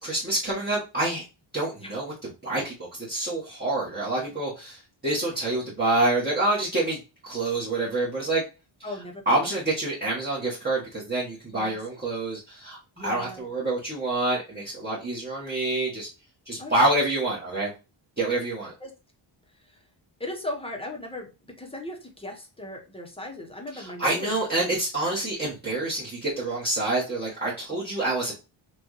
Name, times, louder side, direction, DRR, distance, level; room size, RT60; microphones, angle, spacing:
voice 1, 0.0-1.2 1.5-2.1 2.4-7.0 7.2-8.4 9.2-16.1 16.5-17.7 18.2-18.7 23.7-28.4, right 2 dB, 20° right, -7 dB, 1.5 m, -27 dB
voice 2, 8.8-9.4 11.5-11.8 13.0-13.5 16.6-16.9 18.8-18.9 20.2-21.3 21.6-24.3 27.9-28.0, left 1 dB, 10° left, 1 dB, 1.1 m, -37 dB
6.1 x 2.6 x 3.1 m, 0.30 s
wide cardioid pair, 155°, 49 cm